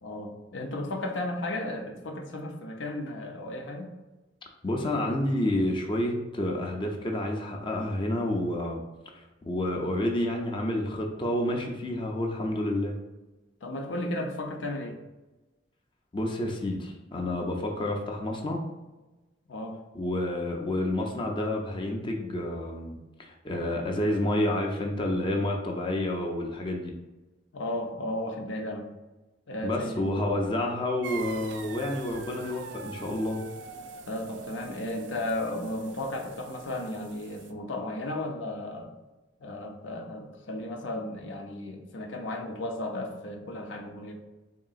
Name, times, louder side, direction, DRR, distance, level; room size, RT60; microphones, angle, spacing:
voice 1, 0.0-3.9 13.6-15.0 19.5-19.8 27.5-28.9 29.5-30.1 34.1-38.9 39.4-44.2, left 1 dB, 85° left, 3 dB, 0.6 m, -34 dB
voice 2, 4.6-8.8 9.1-13.0 16.1-18.6 19.9-26.9 29.6-33.4, left 1 dB, 25° left, 1 dB, 0.5 m, -29 dB
sound 1, 31.0-37.5, right 5 dB, 75° right, 0.3 m, -44 dB
3.7 x 3.7 x 2.4 m, 1.1 s
head